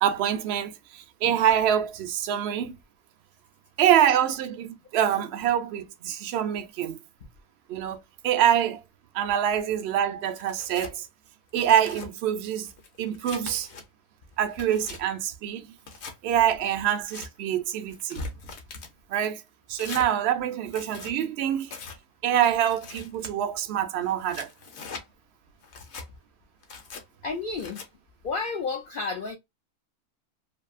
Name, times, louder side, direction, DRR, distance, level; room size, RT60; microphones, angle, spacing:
voice 1, 0.0-2.7 3.8-7.0 7.7-8.8 9.1-11.1 11.5-12.7 13.0-13.7 14.4-15.7 16.2-18.3 19.1-19.4 19.7-21.7 22.2-24.5, right 10 dB, 75° right, 0.6 m, -25 dB
Tearing, 10.4-10.9 11.5-12.1 12.7-13.8 14.3-15.0 15.8-16.2 16.9-17.3 17.9-18.9 19.7-20.1 20.6-21.1 21.7-22.0 22.6-23.3 24.0-25.0 25.6-26.1 26.6-27.0 27.6-27.9, left 4 dB, 55° left, 0.9 m, -41 dB
voice 2, 27.2-27.9 28.2-29.4, left 4 dB, 80° left, 0.4 m, -31 dB
2.7 x 2.6 x 2.3 m
omnidirectional pair, 1.6 m